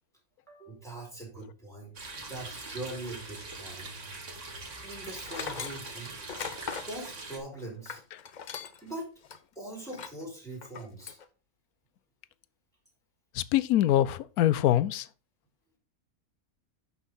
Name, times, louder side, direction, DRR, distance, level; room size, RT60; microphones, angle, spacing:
voice 1, 0.5-1.9 2.3-3.9 4.8-6.2 6.8-8.0 8.8-9.1 9.5-11.2, right 2 dB, ahead, 4.5 m, -41 dB
sound 1, 1.9-7.4, right 3 dB, 55° right, 2.1 m, -42 dB
Tools, 5.2-8.9 9.3-9.4 9.9-10.2 10.6-11.3, left 6 dB, 50° left, 0.6 m, -40 dB
voice 2, 13.3-15.1, left 12 dB, 90° left, 1.1 m, -24 dB
11.0 x 6.3 x 3.7 m
omnidirectional pair, 1.5 m